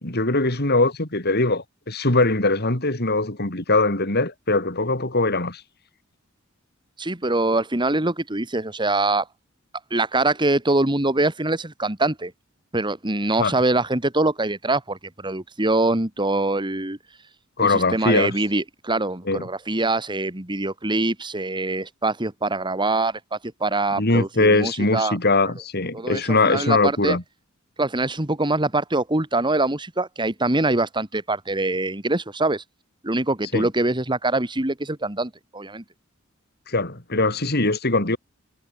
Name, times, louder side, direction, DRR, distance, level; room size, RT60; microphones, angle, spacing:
voice 1, 0.0-5.6 13.4-13.5 17.6-18.3 19.3-19.4 24.0-27.2 33.5-33.7 36.7-38.2, left 2 dB, 50° left, 3.8 m, -21 dB
voice 2, 7.0-9.3 9.9-12.3 12.7-17.0 17.6-25.2 25.9-27.2 27.8-32.6 33.0-35.8, right 2 dB, 20° right, 2.1 m, -24 dB
head